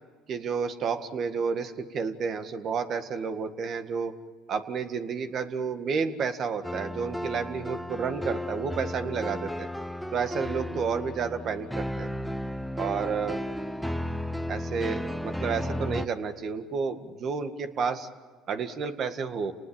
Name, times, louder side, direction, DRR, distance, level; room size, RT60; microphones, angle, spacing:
voice 1, 0.3-4.1 4.5-9.7 10.1-12.1 12.8-13.4 14.5-18.1 18.5-19.5, right 5 dB, 55° right, 8 dB, 1.9 m, -31 dB
sound 1, 6.6-16.1, left 1 dB, ahead, 1.0 m, -34 dB
29.5 x 19.5 x 8.9 m, 1.4 s
supercardioid pair, 75°, 0 cm